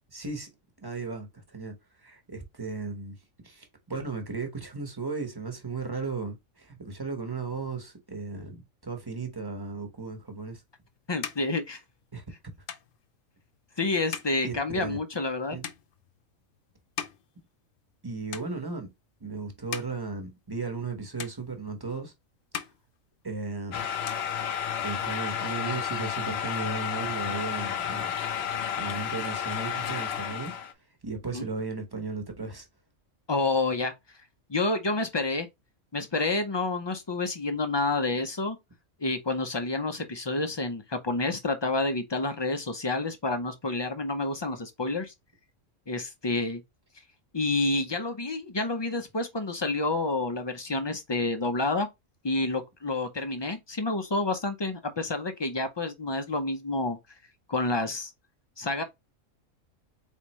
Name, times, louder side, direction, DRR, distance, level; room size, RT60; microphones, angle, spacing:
voice 1, 0.1-0.5 0.8-1.8 2.0-3.2 3.4-10.6 12.1-12.2 14.4-15.0 15.5-15.6 18.0-18.9 19.2-22.1 23.2-23.9 24.8-28.1 28.8-30.6 31.0-32.7, right 4 dB, 20° right, 1.0 m, -35 dB
sound 1, 10.4-18.0 18.3-19.0 19.4-20.9 21.2-22.1 22.4-23.6 23.9-25.0, left 8 dB, 75° left, 1.0 m, -42 dB
voice 2, 11.1-11.8 13.8-15.6 31.3-31.5 33.3-33.9 34.5-35.5 35.9-38.6 39.0-45.1 45.9-46.6 47.3-51.9 52.2-57.0 57.5-58.1 58.6-58.8, left 2 dB, 40° left, 0.3 m, -29 dB
sound 2, 23.7-30.7, left 8 dB, 60° left, 0.8 m, -31 dB
4.1 x 3.6 x 3.0 m
omnidirectional pair, 1.4 m